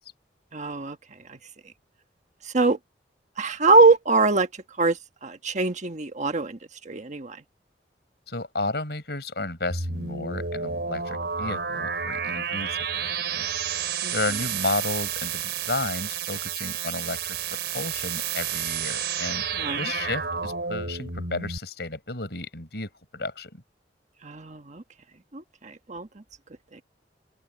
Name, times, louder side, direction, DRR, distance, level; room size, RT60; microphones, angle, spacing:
voice 1, 0.5-1.0 1.3-1.4 2.5-2.8 3.4-4.5 4.8-5.0 5.2-6.6 6.9-7.4 14.0-14.1 19.6-19.8 24.2-24.8 25.3-26.1, right 3 dB, 45° right, 1.3 m, -22 dB
voice 2, 8.3-13.5 14.1-19.5 19.7-23.6, left 2 dB, 65° left, 6.4 m, -33 dB
sound 1, 9.7-21.6, right 7 dB, 70° right, 4.8 m, -30 dB
open air
head